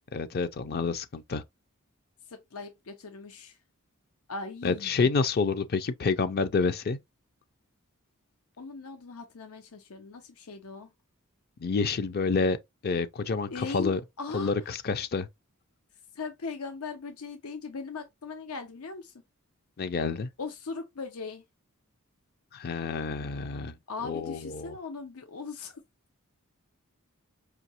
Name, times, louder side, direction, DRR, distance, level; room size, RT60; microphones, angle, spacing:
voice 1, 0.1-1.4 4.6-7.0 11.6-12.6 12.8-14.0 14.3-15.3 19.8-20.3 22.5-23.7 24.0-24.7, left 4 dB, 45° left, 0.5 m, -28 dB
voice 2, 2.3-3.6 4.3-5.0 8.6-10.9 13.5-13.9 14.2-14.5 16.1-19.1 20.4-21.4 23.9-25.8, left 4 dB, 90° left, 0.7 m, -39 dB
5.0 x 2.7 x 2.9 m
head